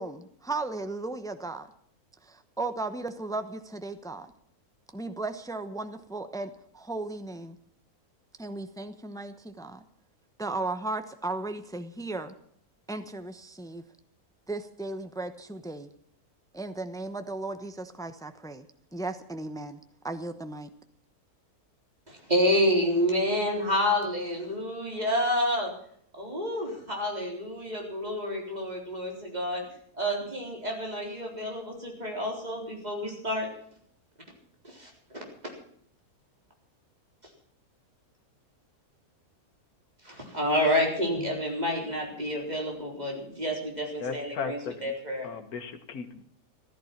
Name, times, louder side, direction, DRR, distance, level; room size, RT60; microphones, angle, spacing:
voice 1, 0.0-1.7 2.3-4.3 4.9-7.6 8.4-9.8 10.4-12.3 12.9-13.8 14.5-15.9 16.5-18.6 18.9-19.8 20.0-20.7, right 2 dB, 5° left, 0.8 m, -36 dB
voice 2, 22.1-25.8 26.1-29.6 29.9-33.5 34.6-35.5 37.2-37.3 40.0-45.3, equal, 25° right, 4.2 m, -29 dB
voice 3, 44.0-44.8 45.2-46.2, left 5 dB, 75° left, 1.8 m, -36 dB
15.0 x 13.5 x 5.9 m
omnidirectional pair, 1.6 m